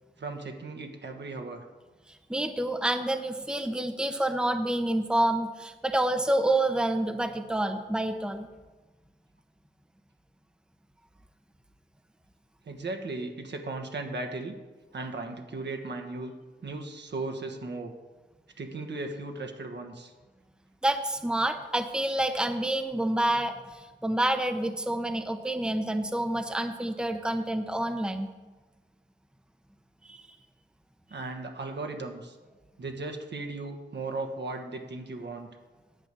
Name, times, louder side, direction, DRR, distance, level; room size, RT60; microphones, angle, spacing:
voice 1, 0.2-1.6 12.6-14.6 14.9-16.3 16.6-17.9 18.6-20.1 31.1-32.4 32.8-35.5, right 3 dB, 65° right, 4 dB, 1.4 m, -36 dB
voice 2, 2.3-8.5 20.8-28.3 30.1-30.2, right 1 dB, 5° right, 7 dB, 0.8 m, -28 dB
10.5 x 5.2 x 8.3 m, 1.2 s
cardioid pair, 60°, 19 cm